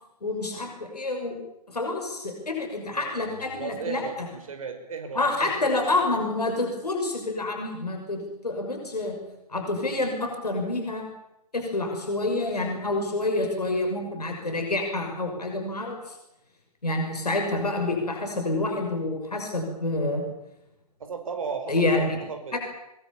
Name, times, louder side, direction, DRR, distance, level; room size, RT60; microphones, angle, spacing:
voice 1, 0.2-1.3 1.7-4.3 5.1-9.2 9.5-11.1 11.5-16.2 16.8-20.2 21.7-22.2 22.5-22.6, left 2 dB, 75° left, 2 dB, 6.4 m, -28 dB
voice 2, 3.6-6.0 21.0-22.6, right 5 dB, 55° right, 7 dB, 5.2 m, -36 dB
23.0 x 22.5 x 7.4 m, 0.87 s
figure-of-eight pair, 125°, 20 cm